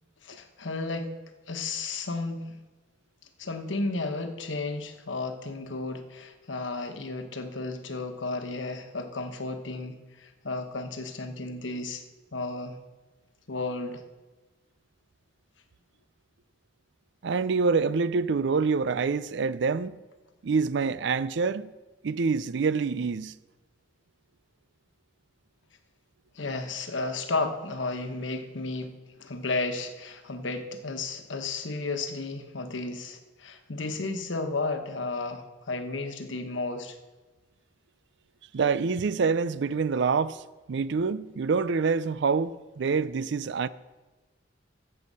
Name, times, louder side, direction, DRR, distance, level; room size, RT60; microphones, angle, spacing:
voice 1, 0.2-1.1 1.5-2.6 3.4-12.0 12.3-12.8 13.5-14.0 26.3-28.9 29.2-37.0, left 3 dB, 85° left, 1.2 m, -33 dB
voice 2, 17.2-20.0 20.4-21.7 22.0-23.3 38.5-40.4 40.7-43.7, right 5 dB, 65° right, 0.5 m, -26 dB
13.5 x 7.8 x 5.5 m
head